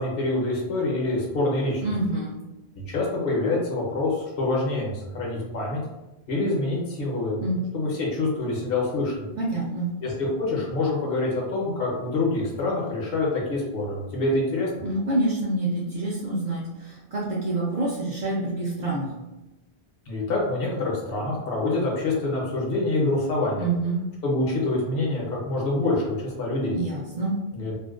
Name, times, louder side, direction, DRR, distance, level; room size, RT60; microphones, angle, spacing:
voice 1, 0.0-1.8 2.9-5.8 6.3-7.5 7.7-9.4 10.0-14.7 20.1-23.6 24.2-26.8 27.5-27.8, left 2 dB, 65° left, -3 dB, 0.9 m, -26 dB
voice 2, 1.8-2.3 7.4-7.6 9.4-9.9 14.8-19.1 23.6-24.0 26.7-27.4, right 2 dB, 55° right, -5 dB, 0.5 m, -27 dB
2.4 x 2.1 x 2.3 m, 1.0 s
omnidirectional pair, 1.1 m